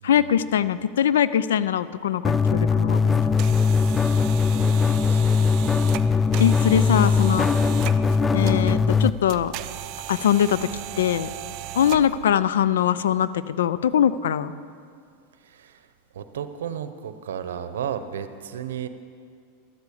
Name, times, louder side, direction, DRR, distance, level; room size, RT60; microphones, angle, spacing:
voice 1, 0.0-3.4 6.4-7.5 8.3-9.5 10.1-10.7 11.0-11.3 11.8-14.5, left 9 dB, 85° left, 16 dB, 0.4 m, -22 dB
sound 1, 2.2-9.1, left 5 dB, 15° left, 0.4 m, -20 dB
sound 2, 3.1-12.3, right 13 dB, 50° right, 0.5 m, -37 dB
voice 2, 4.5-5.2 11.8-12.0 15.4-15.8 16.1-18.9, right 9 dB, 85° right, 11 dB, 0.7 m, -34 dB
12.0 x 8.2 x 6.9 m, 2.3 s
hypercardioid pair, 120°, 0 cm